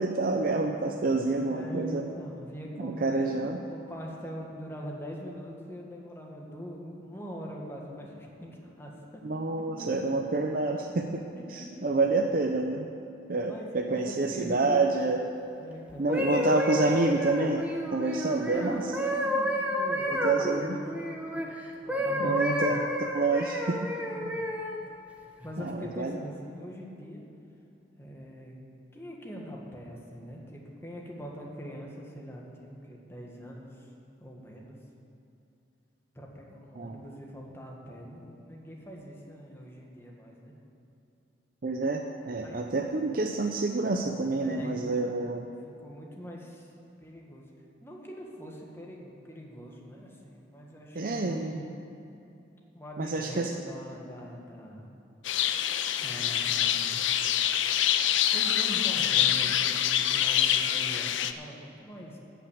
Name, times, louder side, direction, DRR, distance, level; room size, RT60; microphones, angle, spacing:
voice 1, 0.0-2.1 2.8-3.6 9.2-11.2 11.5-12.9 13.3-15.3 16.0-18.9 20.1-20.8 22.2-23.9 24.2-24.3 25.6-26.1 36.8-37.0 41.6-45.5 50.9-51.6 53.0-53.5, right 3 dB, 50° right, 2 dB, 0.6 m, -28 dB
voice 2, 1.3-9.2 9.8-9.9 10.3-10.4 11.3-11.4 13.5-14.8 15.6-16.8 18.4-21.5 21.8-22.9 24.3-24.4 25.4-27.2 28.0-28.5 28.9-33.9 34.2-34.8 36.2-40.5 42.4-42.8 44.4-45.2 45.8-46.7 47.0-47.5 47.8-51.6 52.7-54.9 56.0-57.1 58.3-62.2, equal, 15° left, -2 dB, 1.7 m, -42 dB
sound 1, 15.9-21.5 21.9-24.8 25.4-25.7, left 1 dB, 5° right, 1.0 m, -30 dB
sound 2, 55.2-61.3, left 10 dB, 85° left, 0.5 m, -26 dB
14.0 x 6.0 x 8.6 m, 2.8 s
head